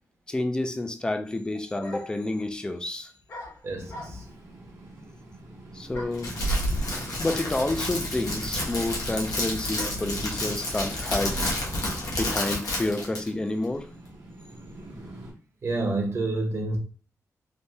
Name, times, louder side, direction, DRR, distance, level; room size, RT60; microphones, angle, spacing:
voice 1, 0.3-3.1 5.7-6.3 7.2-11.5 12.1-13.9, left 2 dB, 15° left, 0.3 m, -29 dB
sound 1, 1.8-2.3 3.3-4.4 5.9-6.3 7.3-7.4 7.6-10.2, left 1 dB, 50° left, 1.0 m, -44 dB
voice 2, 3.6-4.3 15.6-16.8, right 2 dB, 45° right, 0.8 m, -28 dB
sound 2, 3.8-15.3, right 1 dB, 75° right, 0.9 m, -37 dB
Crackle, 6.1-13.3, left 2 dB, 80° left, 0.9 m, -31 dB
3.3 x 2.2 x 2.6 m
wide cardioid pair, 140°, 6 cm